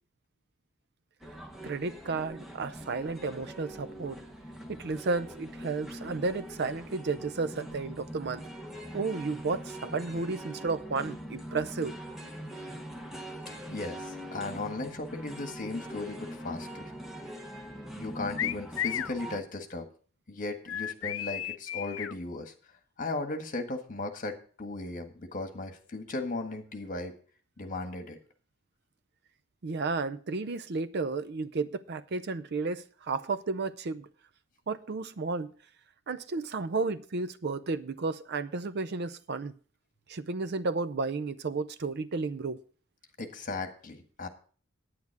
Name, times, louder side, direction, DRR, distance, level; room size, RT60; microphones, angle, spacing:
sound 1, 1.2-19.4, equal, ahead, 1.1 m, -43 dB
voice 1, 1.6-4.2 4.7-8.4 8.9-11.9 29.6-34.1 34.7-35.5 36.1-39.5 40.1-42.6, right 3 dB, 55° right, 0.5 m, -32 dB
voice 2, 13.5-16.8 18.0-19.9 20.3-22.5 23.0-27.1 27.6-28.2 43.2-44.3, left 2 dB, 40° left, 1.6 m, -36 dB
sound 2, 18.4-19.1 20.7-22.1, left 11 dB, 70° left, 0.4 m, -33 dB
9.6 x 9.5 x 4.7 m
head